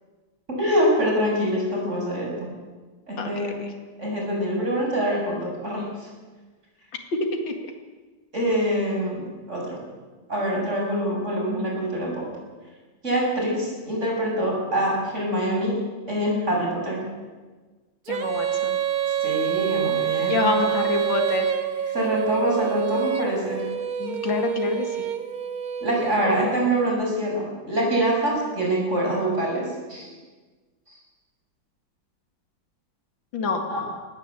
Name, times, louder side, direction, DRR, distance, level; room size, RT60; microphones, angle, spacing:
voice 1, 0.6-2.5 3.1-3.6 4.0-5.9 8.3-9.8 10.3-12.3 13.0-17.1 19.2-20.6 21.9-23.7 25.8-30.1 33.7-33.8, right 1 dB, 35° right, -1 dB, 7.2 m, -25 dB
voice 2, 18.1-18.8 20.3-21.5 24.0-24.9 33.3-33.6, left 3 dB, 70° left, 3 dB, 2.8 m, -26 dB
Female singing, 18.1-26.9, right 9 dB, 55° right, 1.4 m, -27 dB
20.0 x 16.0 x 8.4 m, 1.3 s
omnidirectional pair, 2.1 m